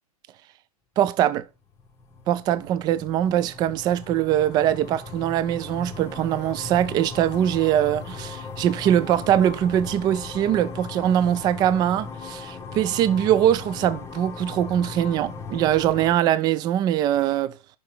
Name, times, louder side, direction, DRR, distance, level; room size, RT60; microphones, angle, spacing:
voice 1, 1.0-1.4 2.3-17.6, right 11 dB, 20° right, 0.4 m, -22 dB
sound 1, 1.8-16.2, left 4 dB, 15° left, 1.1 m, -38 dB
6.7 x 5.4 x 6.5 m
figure-of-eight pair, 105°, 19 cm